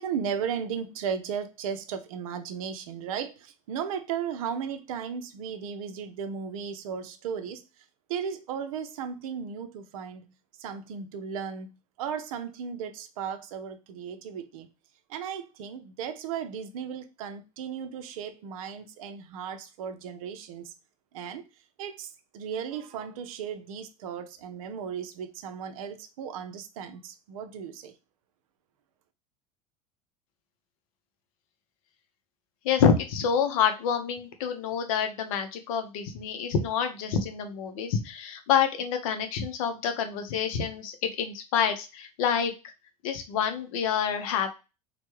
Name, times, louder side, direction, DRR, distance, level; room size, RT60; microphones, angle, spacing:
voice 1, 0.0-7.6 8.1-10.3 10.6-14.7 15.1-20.7 21.1-21.4 21.8-27.9, right 7 dB, 60° right, 0.5 m, -35 dB
voice 2, 32.6-42.5 43.0-44.5, left 7 dB, 60° left, 0.6 m, -27 dB
3.2 x 2.2 x 3.0 m
figure-of-eight pair, 75°, 20 cm